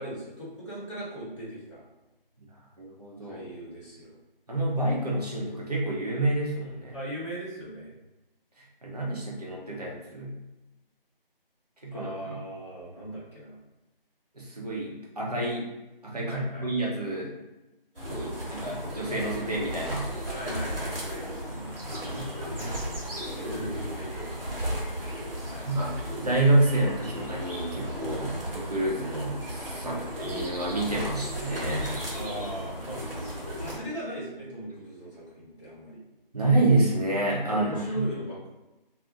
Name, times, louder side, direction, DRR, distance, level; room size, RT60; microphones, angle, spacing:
voice 1, 0.0-1.8 3.2-4.2 6.9-7.9 11.9-13.6 16.3-16.7 18.1-18.7 20.3-21.8 22.1-23.0 23.4-25.7 28.2-28.4 29.8-30.1 32.1-33.1 33.6-36.0 37.4-38.5, right 1 dB, 30° left, -8 dB, 0.8 m, -39 dB
voice 2, 2.8-3.4 4.5-7.0 8.6-10.4 11.8-12.4 14.3-15.7 16.0-17.3 18.0-20.1 21.9-22.8 25.6-31.9 36.3-38.1, right 2 dB, 45° right, -3 dB, 0.6 m, -28 dB
sound 1, 17.9-33.8, equal, 75° right, 1.1 m, -35 dB
2.4 x 2.0 x 2.6 m, 1.0 s
figure-of-eight pair, 165°, 29 cm